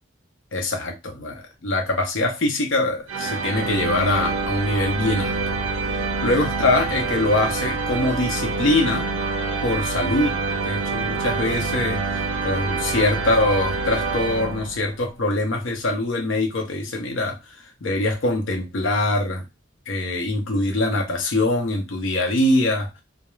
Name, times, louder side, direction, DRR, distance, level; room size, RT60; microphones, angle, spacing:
voice 1, 0.5-5.4 6.2-9.1 9.6-10.4 10.6-17.4 17.8-19.4 19.9-22.9, left 2 dB, 80° left, 0.7 m, -23 dB
sound 1, 3.1-15.0, right 3 dB, 75° right, 0.4 m, -26 dB
2.3 x 2.1 x 3.1 m
head